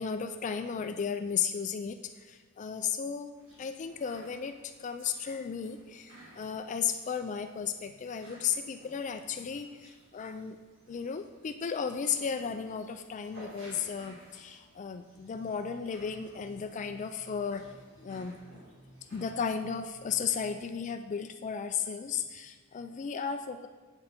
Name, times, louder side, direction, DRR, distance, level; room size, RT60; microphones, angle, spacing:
voice 1, 0.0-3.3 3.6-10.6 10.9-17.7 18.0-18.4 19.1-23.7, left 6 dB, 35° left, 8 dB, 0.3 m, -34 dB
sound 1, 3.3-19.4, right 1 dB, 65° right, 3.0 m, -56 dB
sound 2, 15.3-20.6, right 1 dB, 15° right, 0.8 m, -57 dB
8.0 x 7.6 x 4.3 m, 1.4 s
head